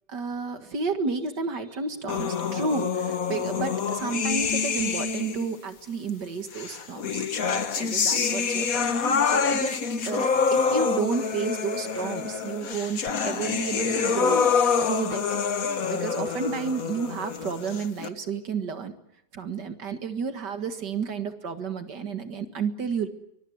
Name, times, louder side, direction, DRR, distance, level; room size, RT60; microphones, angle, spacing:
voice 1, 0.1-7.2 7.8-14.5 14.8-15.2 15.9-18.9 19.3-23.1, right 5 dB, 80° right, 7 dB, 2.4 m, -31 dB
sound 1, 2.1-5.5 6.5-18.1, left 6 dB, 55° left, 1.7 m, -26 dB
24.0 x 22.0 x 7.9 m, 0.78 s
omnidirectional pair, 1.8 m